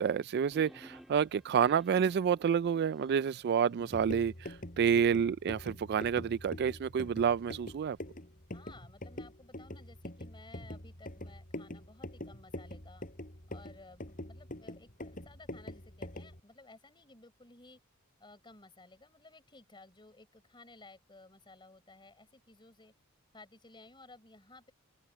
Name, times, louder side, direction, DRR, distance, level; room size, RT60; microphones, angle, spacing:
voice 1, 0.0-8.0, right 7 dB, 45° right, 0.3 m, -29 dB
sound 1, 0.5-4.3, equal, ahead, 3.3 m, -57 dB
sound 2, 3.8-16.4, left 1 dB, 40° left, 5.5 m, -45 dB
voice 2, 8.5-13.1 13.5-17.8 18.2-22.9 23.3-24.7, left 2 dB, 20° left, 4.8 m, -56 dB
head